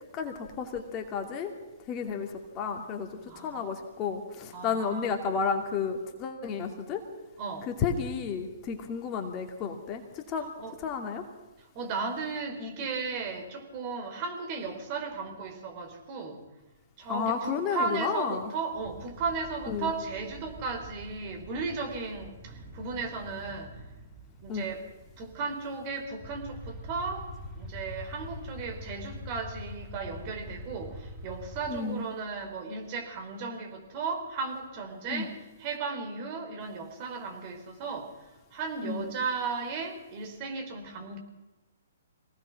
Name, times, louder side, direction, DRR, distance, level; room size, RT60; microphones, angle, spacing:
voice 1, 0.1-1.5 1.9-7.0 7.7-10.5 10.8-11.2 17.1-18.5 19.7-19.9 24.5-24.7 31.7-32.0 35.1-35.3 38.8-39.1, left 6 dB, 25° left, 4 dB, 2.6 m, -32 dB
voice 2, 3.3-3.7 4.5-5.1 7.4-7.7 10.6-10.8 11.7-16.4 17.0-23.9 24.4-24.8 25.2-35.3 35.6-38.1 38.5-41.2, right 4 dB, 35° right, 4 dB, 4.4 m, -35 dB
sound 1, 18.7-31.8, left 1 dB, 5° right, 5.1 m, -45 dB
24.5 x 18.0 x 6.0 m, 1.1 s
figure-of-eight pair, 130°, 0 cm